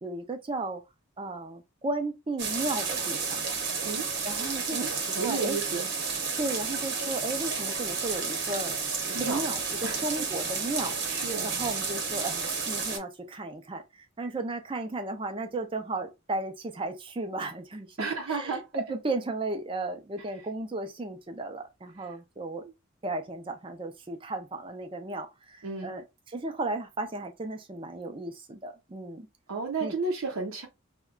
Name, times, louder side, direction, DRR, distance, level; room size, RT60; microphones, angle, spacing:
voice 1, 0.0-0.8 1.2-3.4 4.2-5.6 6.4-8.7 9.1-22.6 23.0-29.3 29.8-29.9, right 2 dB, 25° right, 0.4 m, -35 dB
sound 1, 2.4-13.0, right 5 dB, 50° right, 0.9 m, -31 dB
voice 2, 4.7-5.9 9.1-9.4 9.8-10.3 11.1-11.5 18.0-18.7 22.6-22.7 25.6-25.9 29.5-30.7, right 4 dB, 85° right, 0.6 m, -33 dB
2.3 x 2.2 x 3.6 m
head